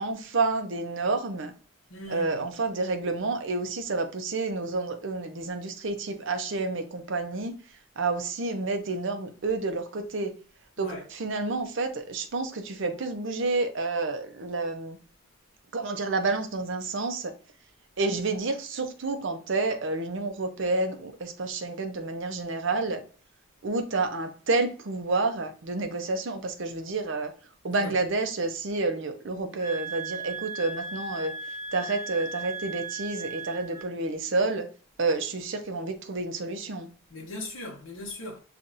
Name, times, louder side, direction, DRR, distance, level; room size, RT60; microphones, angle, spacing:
voice 1, 0.0-1.5 2.1-7.5 8.0-10.3 10.8-10.9 11.2-15.0 15.7-17.3 18.0-23.0 23.6-27.3 27.6-31.3 31.7-34.7 35.0-36.9, right 3 dB, 60° right, 0.7 m, -29 dB
voice 2, 1.9-2.5 10.8-11.1 27.7-27.9 37.1-38.4, left 2 dB, 65° left, 0.9 m, -39 dB
sound 1, 29.6-33.9, right 3 dB, 25° left, 2.1 m, -37 dB
6.9 x 2.5 x 2.5 m
head